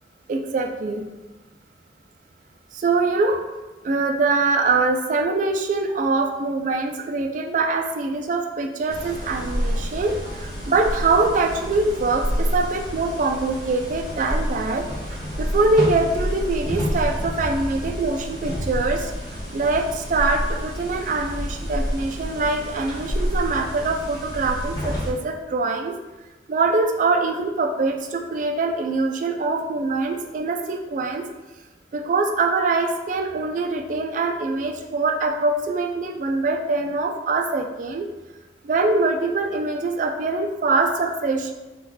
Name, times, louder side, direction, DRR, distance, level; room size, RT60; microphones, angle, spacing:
voice 1, 0.3-1.1 2.8-3.4 3.8-14.9 15.4-19.1 19.5-26.0 26.5-31.3 31.9-38.1 38.6-41.5, right 3 dB, 45° right, 4 dB, 0.3 m, -23 dB
sound 1, 8.9-25.1, equal, 25° left, 0.7 m, -29 dB
2.9 x 2.2 x 3.7 m, 1.1 s
head